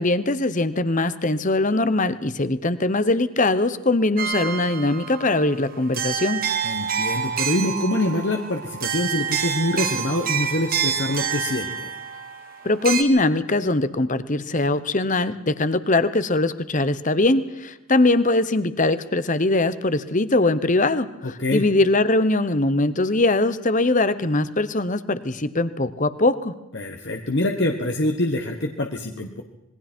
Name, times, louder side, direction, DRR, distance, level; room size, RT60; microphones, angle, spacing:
voice 1, 0.0-6.4 12.6-26.5, left 2 dB, 35° left, 14 dB, 1.0 m, -21 dB
sound 1, 4.2-13.0, right 7 dB, 40° right, 1.8 m, -28 dB
voice 2, 6.6-11.9 21.2-21.7 26.7-29.4, left 1 dB, 50° left, 3 dB, 1.4 m, -25 dB
26.5 x 21.5 x 4.5 m, 0.99 s
head